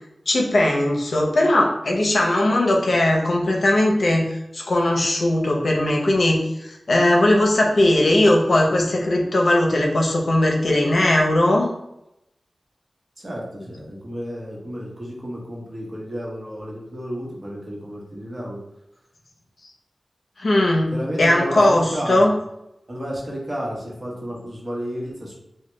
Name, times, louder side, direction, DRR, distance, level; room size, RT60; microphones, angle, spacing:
voice 1, 0.3-11.7 20.4-20.9 21.2-22.3, left 1 dB, 65° left, 0 dB, 0.6 m, -19 dB
voice 2, 13.2-18.6 20.9-22.3 22.9-25.3, equal, 35° right, -4 dB, 1.0 m, -31 dB
3.2 x 2.2 x 3.1 m, 0.83 s
wide cardioid pair, 95°, 0 cm